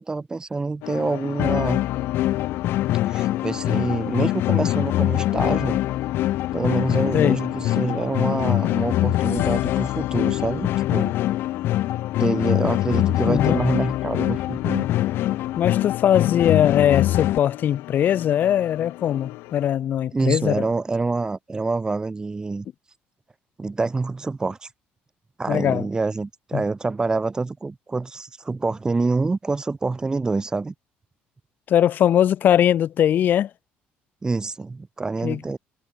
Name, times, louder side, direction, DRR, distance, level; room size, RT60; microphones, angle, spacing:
voice 1, 0.0-1.8 3.0-5.8 6.5-11.1 12.2-14.9 20.1-22.7 23.6-24.7 25.4-30.7 34.2-35.6, right 3 dB, 20° right, 5.3 m, -26 dB
sound 1, 0.8-19.7, left 21 dB, 85° left, 2.4 m, -36 dB
sound 2, 1.4-17.4, left 14 dB, 65° left, 0.8 m, -23 dB
voice 2, 13.3-13.6 15.6-20.6 25.5-25.8 26.5-26.6 31.7-33.5 35.2-35.4, left 10 dB, 50° left, 1.1 m, -20 dB
cardioid pair, 115°, 4 cm